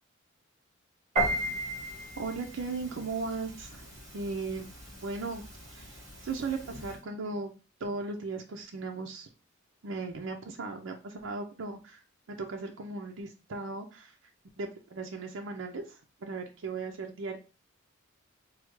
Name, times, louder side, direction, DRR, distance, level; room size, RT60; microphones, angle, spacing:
Piano, 1.2-7.0, right 1 dB, 35° right, 2.0 m, -36 dB
voice 1, 2.2-3.9 4.1-4.7 5.0-5.4 5.7-6.0 6.2-7.5 7.8-9.3 9.8-12.0 12.3-14.1 14.6-17.4, right 3 dB, 65° right, 2 dB, 0.5 m, -37 dB
4.6 x 2.1 x 3.0 m, 0.33 s
head